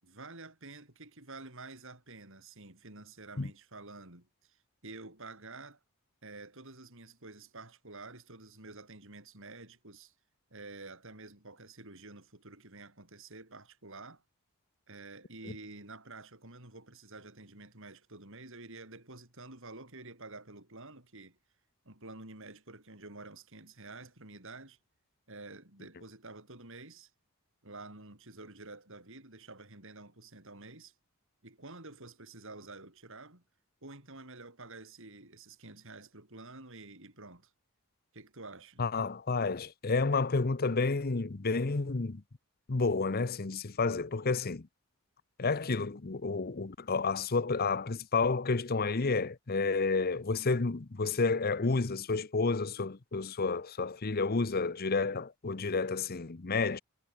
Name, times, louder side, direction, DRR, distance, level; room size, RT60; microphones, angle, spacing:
voice 1, 0.0-5.8 6.2-10.1 10.5-14.2 14.9-21.4 21.8-24.8 25.3-27.1 27.6-30.9 31.4-33.4 33.8-37.5 38.1-38.8, right 3 dB, 65° right, 6.6 m, -49 dB
voice 2, 38.8-42.2 42.7-44.7 45.4-56.8, left 4 dB, 45° left, 0.8 m, -30 dB
head